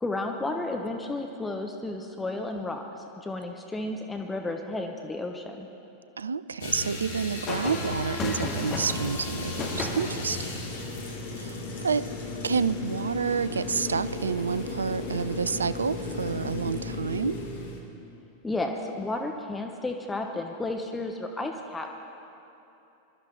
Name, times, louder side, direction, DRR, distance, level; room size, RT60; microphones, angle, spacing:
voice 1, 0.0-5.7 18.4-21.9, left 2 dB, 10° left, 3 dB, 0.9 m, -32 dB
voice 2, 6.2-10.6 11.3-11.6 11.8-12.1 12.4-17.4, right 5 dB, 75° right, 16 dB, 0.3 m, -29 dB
sound 1, 6.6-17.8, left 3 dB, 60° left, 2.0 m, -35 dB
sound 2, 7.5-13.8 15.6-15.9, left 3 dB, 30° left, 2.0 m, -36 dB
22.0 x 12.5 x 4.5 m, 2.9 s
figure-of-eight pair, 90°, 0 cm